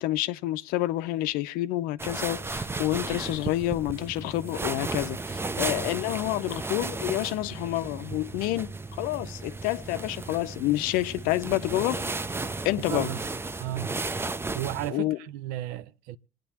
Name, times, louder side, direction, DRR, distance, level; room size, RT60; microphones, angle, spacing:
voice 1, 0.0-12.0 12.6-13.1 14.9-15.2, left 16 dB, 65° left, 0.6 m, -28 dB
sound 1, 2.0-14.9, right 3 dB, 15° right, 0.6 m, -34 dB
voice 2, 12.9-13.2 13.6-13.9 14.5-16.2, right 13 dB, 65° right, 0.5 m, -33 dB
27.0 x 9.1 x 2.8 m
hypercardioid pair, 60°, 16 cm